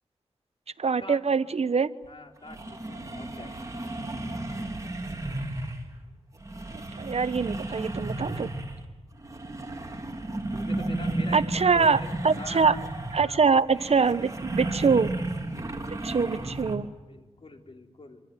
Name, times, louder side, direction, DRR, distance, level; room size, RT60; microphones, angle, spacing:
voice 1, 0.8-1.9 6.7-8.5 11.3-12.8 13.1-15.1 15.9-16.9, right 5 dB, 65° right, 14 dB, 1.0 m, -24 dB
sound 1, 2.0-2.1 2.5-5.9 6.4-8.9 9.2-16.8, right 2 dB, 30° right, 4.1 m, -33 dB
voice 2, 2.1-3.5 10.5-12.8 13.2-13.6 14.6-15.0 15.8-15.9 17.1-18.2, left 2 dB, 55° left, 3 dB, 3.7 m, -44 dB
26.0 x 25.5 x 9.0 m, 1.2 s
wide cardioid pair, 85°, 11 cm